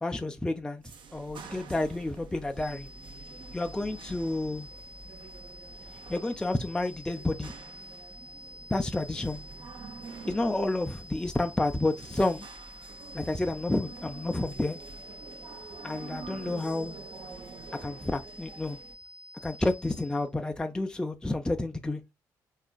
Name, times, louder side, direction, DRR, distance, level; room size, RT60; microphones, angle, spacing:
voice 1, 0.0-0.8 1.1-2.9 3.5-4.7 6.1-7.5 8.7-9.4 10.3-12.5 13.1-14.8 15.8-17.0 17.8-18.8 19.4-22.0, left 2 dB, 10° left, 0.3 m, -30 dB
sound 1, 0.8-18.9, right 4 dB, 65° right, 0.6 m, -47 dB
sound 2, 2.6-20.3, left 1 dB, 40° left, 0.7 m, -49 dB
3.4 x 2.5 x 2.2 m
hypercardioid pair, 45°, 9 cm